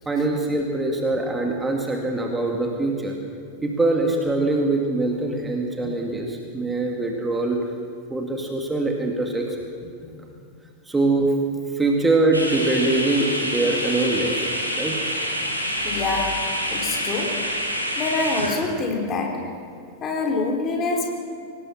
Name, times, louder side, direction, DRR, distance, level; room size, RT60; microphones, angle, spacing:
voice 1, 0.1-3.1 3.6-7.6 8.1-9.7 10.9-11.3 11.7-14.5 14.8-15.0, right 2 dB, 10° right, 1 dB, 2.3 m, -23 dB
sound 1, 12.3-18.6, equal, 90° left, 3.1 m, -27 dB
voice 2, 15.8-16.4 16.7-17.4 18.0-19.4 20.0-21.1, left 3 dB, 30° left, 2 dB, 3.6 m, -25 dB
24.5 x 18.5 x 6.0 m, 2.4 s
figure-of-eight pair, 90°, 0 cm